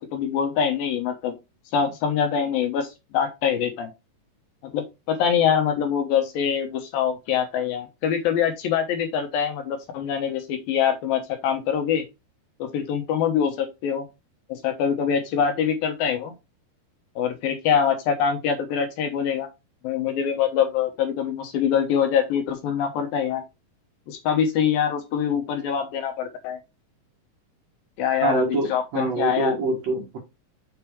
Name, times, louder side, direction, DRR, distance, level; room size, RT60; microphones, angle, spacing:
voice 1, 0.0-1.4 1.7-3.9 4.6-12.0 12.6-14.1 14.5-16.3 17.2-19.5 19.8-23.4 24.1-26.6 28.0-29.6, left 8 dB, 70° left, 2.6 m, -24 dB
voice 2, 28.2-30.2, right 3 dB, 50° right, 2.2 m, -25 dB
7.1 x 5.3 x 3.1 m
omnidirectional pair, 4.5 m